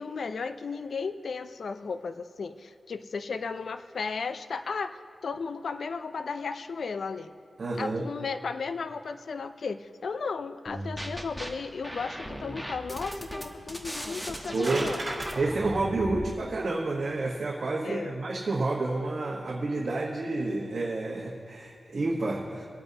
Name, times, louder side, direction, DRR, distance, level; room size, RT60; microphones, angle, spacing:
voice 1, 0.0-7.3 7.8-15.3 17.8-18.2, left 5 dB, 70° left, 10 dB, 0.4 m, -35 dB
voice 2, 7.6-8.0 14.5-14.9 15.3-22.7, right 2 dB, 60° right, -3 dB, 1.2 m, -29 dB
sound 1, 10.7-11.5 11.8-16.3, equal, 5° left, 1.1 m, -37 dB
sound 2, 14.3-15.3, right 2 dB, 40° right, 2.6 m, -35 dB
24.5 x 8.7 x 2.9 m, 2.6 s
wide cardioid pair, 110°, 0 cm